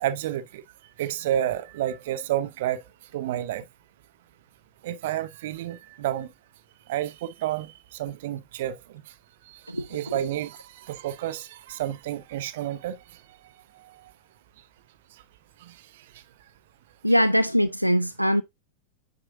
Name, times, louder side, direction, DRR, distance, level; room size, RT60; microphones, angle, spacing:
voice 1, 0.0-0.6 1.0-2.8 3.1-3.6 4.8-6.3 6.9-8.8 9.5-13.0 13.8-14.1 15.6-15.7, right 12 dB, 55° right, 0.7 m, -30 dB
voice 2, 17.0-18.4, equal, 90° right, 0.3 m, -21 dB
8.9 x 4.7 x 2.6 m
figure-of-eight pair, 90°, 0 cm